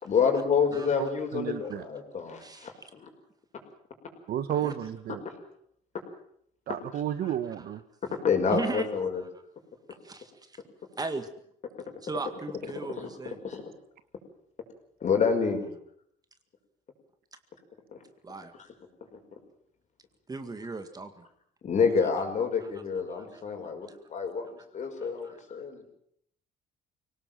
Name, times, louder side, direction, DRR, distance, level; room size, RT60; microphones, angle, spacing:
voice 1, 0.0-3.1 8.2-9.2 13.0-13.1 13.4-13.6 15.0-15.7 21.6-25.9, left 5 dB, 45° left, 4 dB, 5.7 m, -28 dB
voice 2, 0.9-1.8 4.3-5.2 6.7-7.8, right 10 dB, 65° right, 13 dB, 1.4 m, -32 dB
voice 3, 2.4-2.9 4.6-4.7 7.6-7.7 8.5-8.8 10.0-10.6 11.0-11.3 12.0-13.4 18.2-18.5 20.3-21.2 22.6-22.7 23.1-23.4 23.9-24.0 25.0-25.4, right 3 dB, 20° right, 9 dB, 2.0 m, -37 dB
24.5 x 18.0 x 7.7 m, 0.69 s
cardioid pair, 110°, 17 cm